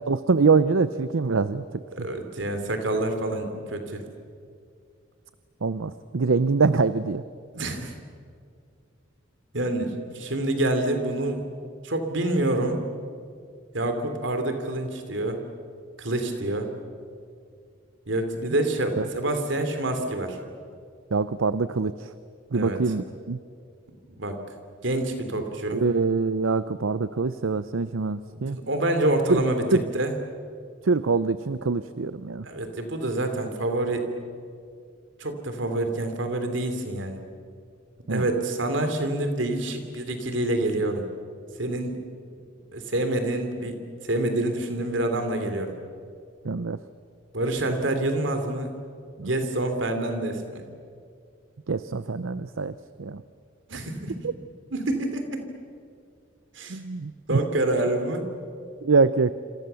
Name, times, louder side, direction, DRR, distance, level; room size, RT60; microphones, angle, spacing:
voice 1, 0.1-1.6 5.6-7.2 19.0-19.1 21.1-22.1 22.5-23.4 25.7-28.6 29.3-29.4 29.7-29.8 30.8-32.4 38.1-38.3 46.4-46.8 49.2-49.3 51.7-52.7 53.0-53.2 54.2-54.3 56.7-57.4 58.8-59.3, right 4 dB, 80° right, 14 dB, 0.6 m, -24 dB
voice 2, 2.0-4.0 7.5-7.9 9.5-11.4 11.8-12.8 13.7-15.4 16.0-16.7 18.1-20.4 22.5-22.8 24.2-24.4 24.8-25.8 28.3-29.6 29.9-30.1 32.4-34.1 35.2-37.2 38.1-41.1 41.6-41.9 42.7-45.7 47.3-48.7 49.2-50.6 53.7-54.1 54.7-55.4 56.5-56.8 57.3-58.2, right 1 dB, 65° right, 6 dB, 3.2 m, -27 dB
27.5 x 27.0 x 7.0 m, 2.2 s
head